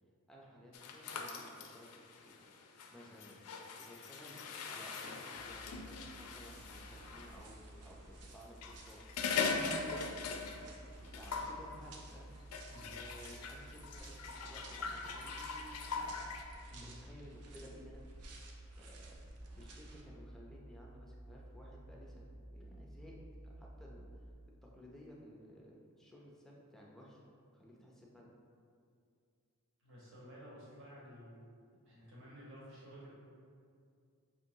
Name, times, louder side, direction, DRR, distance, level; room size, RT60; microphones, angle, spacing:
voice 1, 0.3-2.4 2.9-3.4 3.8-9.0 9.5-10.6 11.1-12.3 12.8-16.2 16.8-18.0 18.8-19.2 19.5-24.1 24.5-28.3, equal, ahead, -3 dB, 0.4 m, -56 dB
sound 1, 0.7-7.3 8.4-10.8 11.0-11.6 12.5-16.4, left 4 dB, 85° left, 0.4 m, -41 dB
sound 2, 5.4-24.3, right 1 dB, 35° right, 0.7 m, -54 dB
sound 3, 6.5-20.0, right 2 dB, 85° right, 0.5 m, -58 dB
voice 2, 29.8-31.5 31.8-33.2, equal, 55° right, -6 dB, 1.0 m, -53 dB
5.3 x 2.8 x 2.6 m, 2.3 s
head